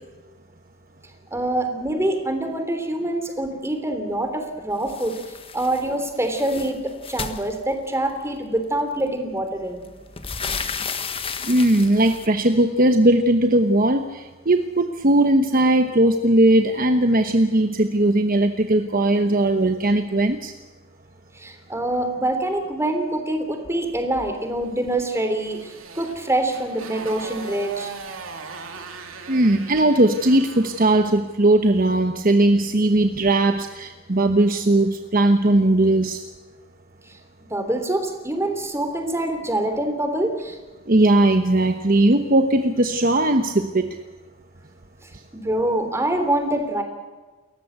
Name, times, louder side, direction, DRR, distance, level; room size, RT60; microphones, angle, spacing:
voice 1, 1.3-5.1 5.5-9.9 21.3-27.9 37.5-40.6 45.0-45.1 45.4-46.8, right 1 dB, 15° right, 6 dB, 3.3 m, -25 dB
sound 1, 4.9-5.9 6.2-8.1 9.1-9.2 9.5-12.3, left 5 dB, 30° left, 1.5 m, -33 dB
voice 2, 11.4-20.5 29.3-36.2 40.9-44.0, right 1 dB, 45° right, 7 dB, 1.1 m, -18 dB
Motorcycle, 24.9-31.0, right 4 dB, 85° right, 2.9 m, -39 dB
29.0 x 14.5 x 8.1 m, 1.3 s
head